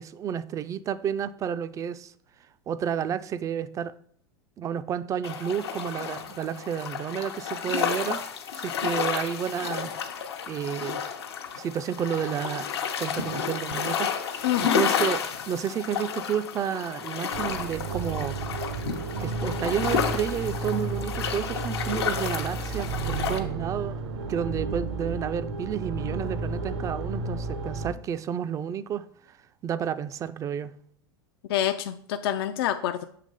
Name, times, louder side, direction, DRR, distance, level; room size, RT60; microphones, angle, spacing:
voice 1, 0.0-2.1 2.7-3.9 4.6-8.2 8.5-9.9 10.5-11.0 11.6-12.7 13.0-18.4 19.2-24.0 24.3-29.0 29.6-30.7, right 8 dB, 25° right, 0.3 m, -31 dB
sound 1, 5.2-23.4, left 7 dB, 85° left, 0.8 m, -31 dB
voice 2, 14.4-14.8 31.5-33.0, left 11 dB, 70° left, 0.4 m, -26 dB
sound 2, 17.3-27.9, right 3 dB, 75° right, 0.8 m, -32 dB
6.7 x 3.0 x 5.3 m
hypercardioid pair, 100°, 13 cm